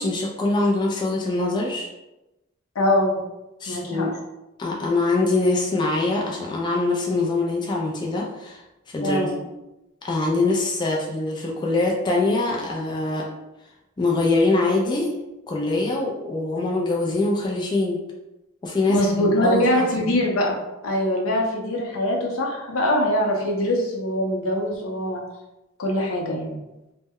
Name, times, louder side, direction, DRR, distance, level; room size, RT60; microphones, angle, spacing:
voice 1, 0.0-1.9 3.6-4.1 4.6-9.3 10.0-13.3 14.0-15.1 15.5-18.0 18.6-20.1, left 2 dB, 20° left, -2 dB, 0.3 m, -23 dB
voice 2, 2.8-3.2 3.7-4.0 9.0-9.4 18.9-25.2 25.8-26.6, left 1 dB, 75° left, 0 dB, 0.6 m, -23 dB
2.1 x 2.0 x 3.4 m, 0.98 s
head